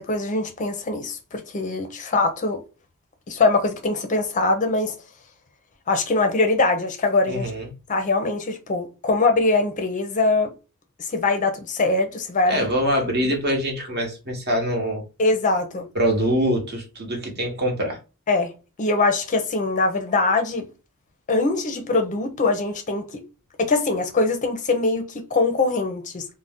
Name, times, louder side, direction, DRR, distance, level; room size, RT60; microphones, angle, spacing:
voice 1, 0.0-2.6 3.3-5.0 5.9-7.5 7.9-10.5 11.0-12.7 13.1-13.2 15.2-15.8 18.3-18.5 18.8-20.7 21.3-23.2 23.6-26.2, left 3 dB, 35° left, 0.5 m, -22 dB
voice 2, 7.3-7.7 12.4-15.0 15.9-18.0, equal, 45° right, 1.0 m, -24 dB
2.5 x 2.1 x 3.5 m
head